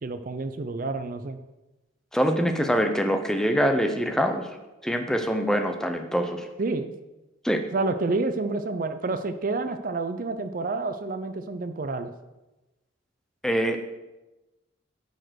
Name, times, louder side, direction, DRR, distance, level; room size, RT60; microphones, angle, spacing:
voice 1, 0.0-1.4 6.6-6.9 7.7-12.1, right 3 dB, 45° right, 9 dB, 0.5 m, -29 dB
voice 2, 2.1-4.5 4.8-6.5 7.4-7.6 13.4-13.8, equal, 5° left, 6 dB, 0.6 m, -24 dB
10.0 x 4.4 x 6.4 m, 1.1 s
head